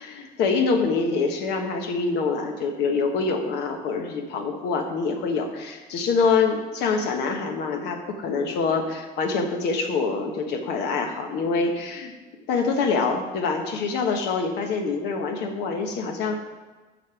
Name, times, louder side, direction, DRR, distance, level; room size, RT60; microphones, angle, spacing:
voice 1, 0.0-12.1 12.5-16.4, left 4 dB, 85° left, 3 dB, 1.2 m, -25 dB
6.5 x 5.3 x 6.9 m, 1.3 s
cardioid pair, 110°, 17 cm